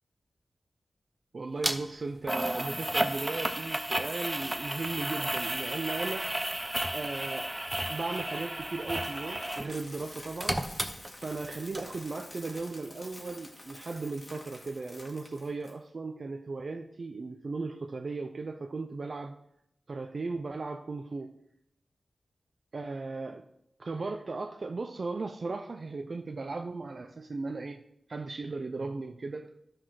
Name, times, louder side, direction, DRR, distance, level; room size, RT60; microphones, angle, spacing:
voice 1, 1.3-6.3 6.9-7.5 7.9-10.6 11.2-19.4 19.9-21.3 22.7-23.4 23.8-27.8 28.1-29.5, right 3 dB, 50° right, 0.6 m, -37 dB
sound 1, 1.6-1.7 2.3-9.7 10.0-11.5 11.7-11.8, right 1 dB, 10° right, 0.8 m, -32 dB
Coin (dropping), 8.3-15.7, left 1 dB, 25° left, 1.8 m, -48 dB
12.5 x 6.0 x 4.8 m
wide cardioid pair, 100°, 0 cm